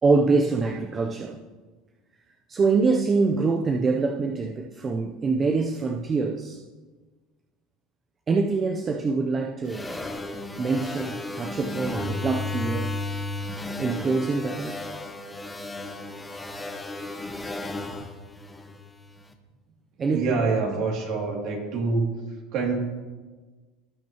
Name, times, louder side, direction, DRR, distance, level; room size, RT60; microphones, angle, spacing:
voice 1, 0.0-1.4 2.5-6.6 8.3-9.9 10.6-12.9 13.8-14.9 20.0-20.7, right 4 dB, 25° right, 2 dB, 0.6 m, -25 dB
sound 1, 9.7-19.1, left 2 dB, 10° left, 0.9 m, -34 dB
voice 2, 20.1-22.1 22.5-22.7, right 4 dB, 55° right, -1 dB, 2.7 m, -26 dB
17.5 x 5.9 x 3.0 m, 1.3 s
supercardioid pair, 120°, 0 cm